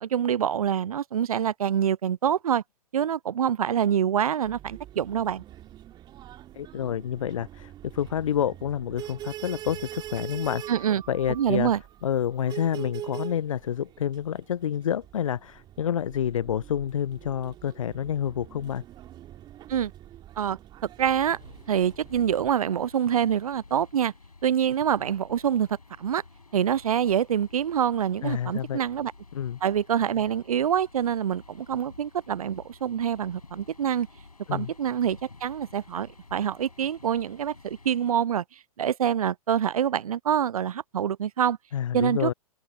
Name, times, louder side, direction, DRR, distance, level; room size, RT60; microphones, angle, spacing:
voice 1, 0.0-2.6 2.9-5.4 10.7-11.0 11.3-11.8 19.7-19.9 20.4-20.6 21.0-21.4 21.7-24.1 24.4-25.7 26.0-26.2 26.5-29.1 29.6-34.1 34.5-38.4 38.8-41.6 41.9-42.3, right 9 dB, 70° right, 0.4 m, -26 dB
sound 1, 4.4-22.5, right 12 dB, 20° right, 2.5 m, -44 dB
voice 2, 6.5-10.6 11.1-11.7 12.0-18.8 28.2-28.8 29.3-29.6 34.5-34.7 41.7-42.3, left 9 dB, 60° left, 0.8 m, -28 dB
sound 2, 21.2-38.1, left 3 dB, 80° left, 5.7 m, -51 dB
open air
figure-of-eight pair, 110°, 19 cm